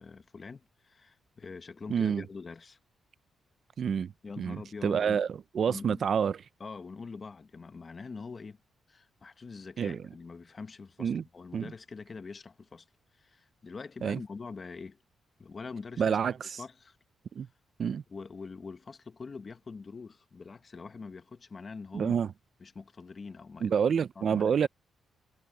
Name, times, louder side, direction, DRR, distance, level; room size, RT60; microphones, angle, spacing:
voice 1, 0.0-2.8 4.2-5.2 5.7-6.0 6.6-8.6 8.9-12.8 13.1-15.0 15.4-16.2 16.6-17.0 18.1-22.1 22.6-23.8 24.2-24.7, left 4 dB, 35° left, 1.2 m, -44 dB
voice 2, 1.9-2.2 3.8-6.4 9.8-10.0 11.0-11.2 11.5-11.7 14.0-14.2 16.0-16.6 17.3-17.5 17.8-18.0 21.9-22.3 23.6-24.7, right 7 dB, 55° right, 0.5 m, -28 dB
cardioid pair, 105°, 0 cm